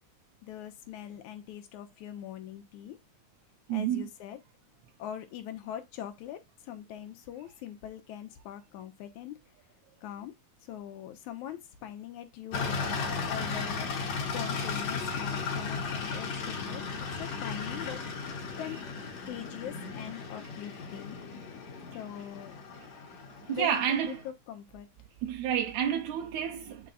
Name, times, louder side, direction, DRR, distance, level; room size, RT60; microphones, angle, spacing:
voice 1, 0.4-3.0 3.7-4.4 5.0-9.4 10.0-10.3 10.7-12.8 13.3-13.9 14.2-18.8 19.3-21.2 21.9-22.5 23.5-24.9, left 10 dB, 85° left, 2.5 m, -42 dB
voice 2, 3.7-4.0 23.5-24.2 25.2-26.9, right 9 dB, 80° right, 2.0 m, -29 dB
sound 1, 12.5-24.3, left 5 dB, 65° left, 2.6 m, -36 dB
9.0 x 5.2 x 2.4 m
omnidirectional pair, 3.3 m